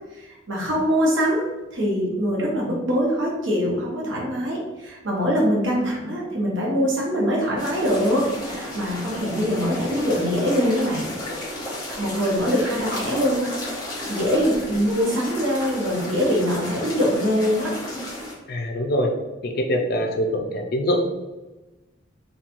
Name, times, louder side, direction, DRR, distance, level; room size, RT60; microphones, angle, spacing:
voice 1, 0.1-1.4 1.7-11.1 11.9-13.5 14.1-17.7, equal, 75° right, -3 dB, 0.8 m, -23 dB
sound 1, 7.6-18.3, left 1 dB, 20° left, 0.7 m, -33 dB
voice 2, 18.5-19.1 19.4-21.1, equal, 50° left, 3 dB, 0.4 m, -23 dB
2.9 x 2.2 x 2.5 m, 1.1 s
head